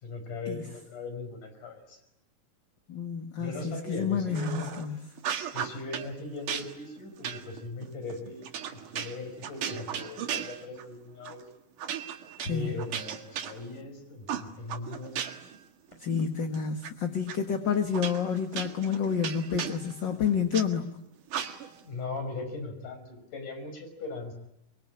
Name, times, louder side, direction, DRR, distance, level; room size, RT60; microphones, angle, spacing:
voice 1, 0.0-2.0 3.4-4.7 5.5-11.5 12.5-15.2 21.8-24.3, left 3 dB, 70° left, 7 dB, 7.0 m, -39 dB
voice 2, 2.9-5.0 12.4-12.7 16.0-20.9, left 7 dB, 45° left, 6 dB, 1.8 m, -29 dB
sound 1, 4.3-4.9 5.2-6.1 6.5-10.9 11.2-11.4 11.8-13.9 14.3-15.6 15.9-16.9 17.3-17.4 17.9-20.7 21.3-21.8, right 9 dB, 75° right, 3.3 m, -36 dB
24.5 x 24.0 x 9.8 m, 0.82 s
omnidirectional pair, 3.7 m